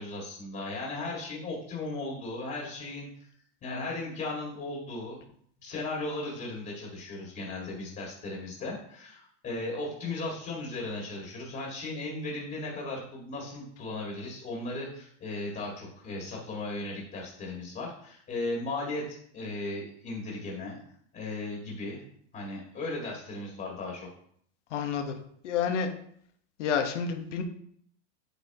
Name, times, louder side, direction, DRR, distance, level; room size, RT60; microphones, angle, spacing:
voice 1, 0.0-3.3 3.6-5.2 5.6-20.8 21.1-22.0 22.3-24.1, left 2 dB, 25° left, -2 dB, 2.2 m, -36 dB
voice 2, 24.7-25.1 25.4-25.9 26.6-27.4, left 7 dB, 85° left, 5 dB, 1.3 m, -29 dB
8.7 x 6.7 x 3.0 m, 0.64 s
supercardioid pair, 140°, 35 cm